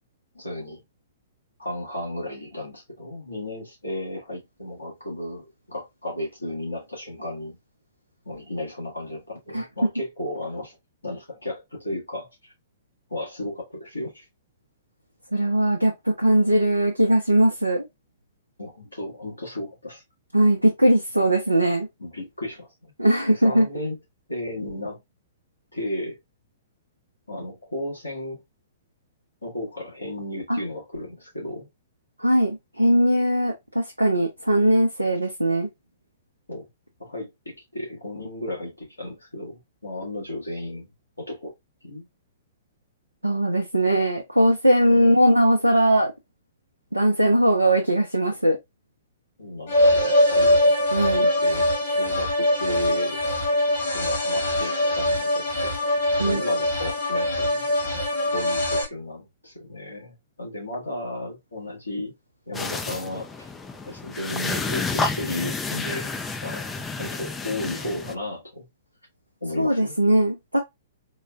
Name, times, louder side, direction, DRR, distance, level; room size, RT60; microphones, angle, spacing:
voice 1, 0.3-0.8 1.6-7.6 8.2-10.8 11.0-12.5 13.1-14.3 18.6-20.0 22.0-22.9 23.3-24.0 24.3-25.0 25.7-26.2 27.3-28.4 29.4-31.7 36.5-36.7 37.0-40.9 41.2-41.5 41.8-42.1 44.9-45.0 49.4-50.7 51.1-51.7 52.0-53.2 53.9-55.8 56.2-58.0 58.3-62.1 62.5-63.5 63.8-66.1 66.4-66.7 67.0-68.7 69.4-69.9, left 1 dB, 85° left, 1.7 m, -34 dB
voice 2, 15.3-17.9 20.3-21.9 23.0-23.7 30.5-30.6 32.2-35.7 43.2-46.1 46.9-48.6 50.9-51.3 56.2-56.4 69.6-70.6, right 1 dB, 90° right, 0.5 m, -20 dB
sound 1, 49.7-58.8, left 1 dB, 60° left, 1.7 m, -22 dB
sound 2, 62.5-68.1, left 3 dB, 10° left, 0.4 m, -30 dB
3.8 x 2.1 x 2.3 m
figure-of-eight pair, 115°, 0 cm